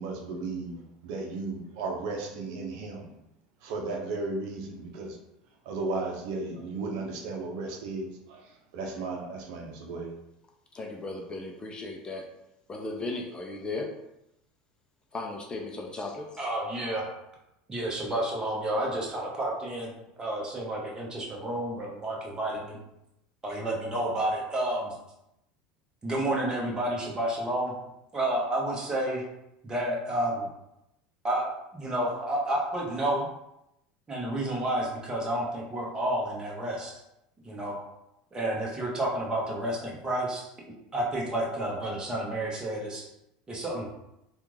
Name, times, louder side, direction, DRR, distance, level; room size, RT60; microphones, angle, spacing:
voice 1, 0.0-3.1 3.6-5.2 5.6-10.2, right 3 dB, 70° right, 0 dB, 0.7 m, -35 dB
voice 2, 10.7-12.2 12.7-13.9 15.1-16.4, left 2 dB, 25° left, 1 dB, 0.6 m, -36 dB
voice 3, 16.4-17.1 17.7-19.9 20.2-22.8 23.4-24.9 26.0-27.7 28.1-29.2 29.6-30.5 31.2-33.3 34.1-37.0 37.4-37.8 38.3-40.5 40.9-43.1 43.5-43.9, right 1 dB, 20° right, -3 dB, 1.2 m, -30 dB
3.4 x 2.4 x 3.2 m, 0.86 s
supercardioid pair, 100°, 4 cm